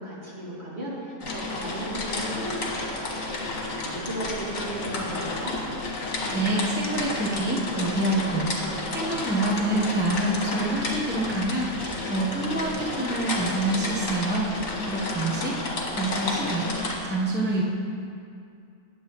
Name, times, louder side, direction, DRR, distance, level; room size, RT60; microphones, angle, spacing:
voice 1, 0.0-3.3 3.9-5.6, right 1 dB, 45° right, -7 dB, 2.8 m, -35 dB
sound 1, 1.2-16.9, left 2 dB, 70° left, 1.9 m, -31 dB
voice 2, 6.3-14.5 14.9-17.6, right 2 dB, 10° right, -3 dB, 0.8 m, -27 dB
18.0 x 7.9 x 3.0 m, 2.5 s
omnidirectional pair, 1.5 m